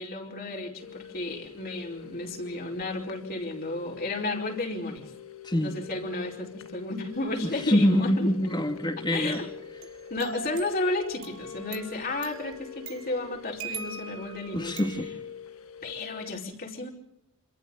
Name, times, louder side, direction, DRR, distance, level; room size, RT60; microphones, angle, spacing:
voice 1, 0.0-5.1 5.6-8.3 9.0-9.5 10.1-14.8 15.8-16.9, left 2 dB, 45° left, 0 dB, 4.7 m, -33 dB
sound 1, 0.8-16.4, left 8 dB, 85° left, 1.5 m, -45 dB
voice 2, 5.4-5.7 7.7-9.4 14.5-15.1, equal, 20° left, 5 dB, 2.2 m, -25 dB
sound 2, 7.1-7.6 9.3-15.1, right 4 dB, 70° right, 6.4 m, -42 dB
27.5 x 27.0 x 3.9 m, 0.80 s
head